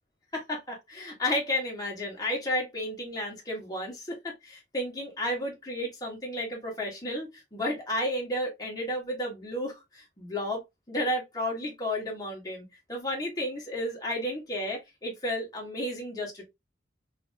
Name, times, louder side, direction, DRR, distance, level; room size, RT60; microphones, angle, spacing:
voice 1, 0.3-16.4, left 1 dB, 20° left, 1.3 m, -32 dB
3.3 x 2.8 x 2.6 m
head